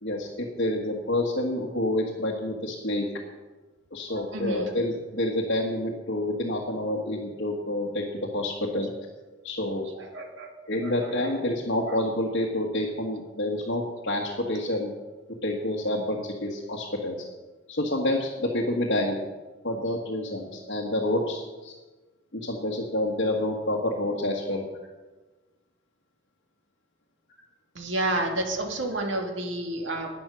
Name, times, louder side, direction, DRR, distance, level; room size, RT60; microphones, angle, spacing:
voice 1, 0.0-3.1 3.9-8.0 8.3-8.9 9.4-9.8 10.7-14.9 15.4-17.1 17.7-19.2 19.6-21.7 22.3-24.6, left 1 dB, 65° left, -2 dB, 1.7 m, -28 dB
voice 2, 4.1-4.8 9.8-10.5 10.8-11.3 11.9-12.0 27.8-30.1, right 1 dB, 80° right, 2 dB, 2.1 m, -31 dB
11.5 x 9.7 x 6.3 m, 1.2 s
head